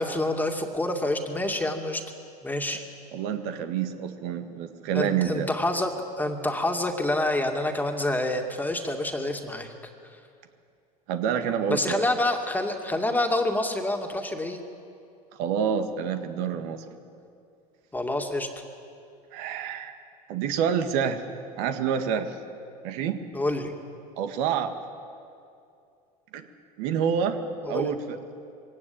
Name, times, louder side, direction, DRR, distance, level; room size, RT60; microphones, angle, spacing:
voice 1, 0.0-2.0 2.4-2.8 4.9-9.7 10.1-10.2 11.7-14.6 17.9-18.5 23.3-23.7 27.6-27.9, left 1 dB, 10° left, 3 dB, 2.4 m, -27 dB
voice 2, 3.1-5.5 11.1-12.0 15.4-16.8 19.3-19.9 20.3-21.2 21.6-22.3 22.8-23.3 24.2-24.7 26.3-26.4 26.8-27.4 27.7-28.2, right 7 dB, 65° right, 7 dB, 1.8 m, -27 dB
21.5 x 17.5 x 8.8 m, 2.5 s
hypercardioid pair, 90°, 20 cm